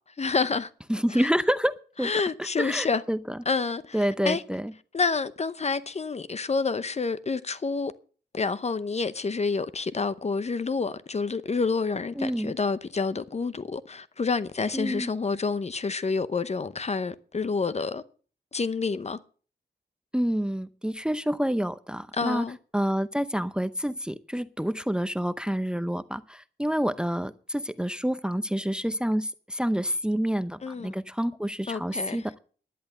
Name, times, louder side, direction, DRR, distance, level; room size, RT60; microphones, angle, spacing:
voice 1, 0.2-0.7 1.1-1.3 2.0-3.0 3.5-4.4 4.9-7.9 8.3-18.0 18.5-19.2 22.1-22.6 30.6-30.9 31.7-32.3, left 4 dB, 35° left, 0.7 m, -28 dB
voice 2, 0.9-2.1 2.6-3.4 3.9-4.7 12.2-12.5 14.7-15.1 20.1-22.5 22.7-32.4, equal, 5° right, 0.7 m, -28 dB
11.0 x 10.5 x 6.6 m
cardioid pair, 80°, 18 cm